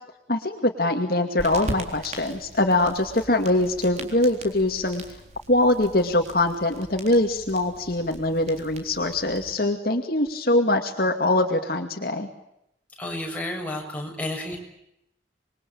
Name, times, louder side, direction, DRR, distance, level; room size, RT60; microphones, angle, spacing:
voice 1, 0.3-5.0 5.5-12.3, left 1 dB, 55° left, 4 dB, 2.4 m, -23 dB
sound 1, 1.4-9.5, right 1 dB, 40° right, 3.8 m, -40 dB
voice 2, 13.0-14.6, left 1 dB, 10° left, 0 dB, 6.8 m, -31 dB
27.0 x 22.5 x 8.7 m, 0.81 s
head